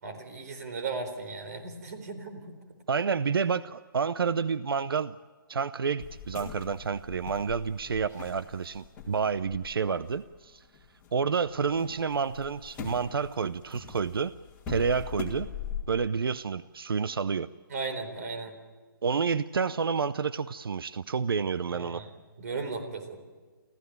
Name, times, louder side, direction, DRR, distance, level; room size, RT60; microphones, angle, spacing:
voice 1, 0.0-2.6 17.7-18.5 21.7-22.1 22.4-23.2, right 4 dB, 45° right, 6 dB, 4.3 m, -36 dB
voice 2, 2.9-5.2 5.5-10.6 11.1-14.3 14.7-15.5 15.9-17.5 19.0-22.0, right 5 dB, 90° right, 15 dB, 0.6 m, -29 dB
sound 1, 6.0-11.1 11.5-15.8, left 7 dB, 10° left, 2.7 m, -42 dB
26.0 x 15.5 x 9.3 m, 1.4 s
hypercardioid pair, 165°, 12 cm